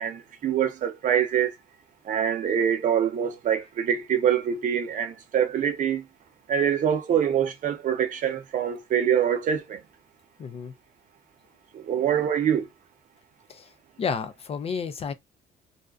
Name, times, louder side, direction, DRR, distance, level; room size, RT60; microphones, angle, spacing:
voice 1, 0.0-1.5 2.1-6.0 6.5-9.8 11.9-12.6, right 8 dB, 50° right, 0.7 m, -24 dB
voice 2, 10.4-10.7 13.5-15.1, left 6 dB, 35° left, 0.4 m, -32 dB
2.4 x 2.1 x 2.4 m
cardioid pair, 110°, 17 cm